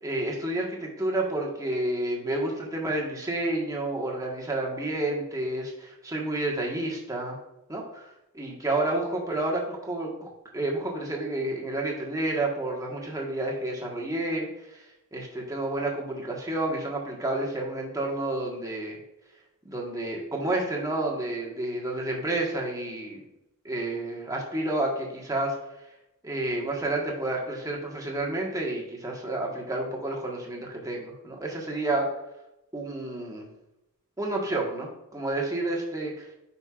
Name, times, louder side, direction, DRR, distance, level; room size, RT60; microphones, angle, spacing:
voice 1, 0.0-7.4 7.7-14.8 15.1-19.0 19.6-23.2 23.6-25.5 26.2-32.1 32.7-33.5 34.2-36.3, right 2 dB, 15° right, -1 dB, 1.4 m, -30 dB
9.0 x 5.4 x 2.4 m, 0.89 s
head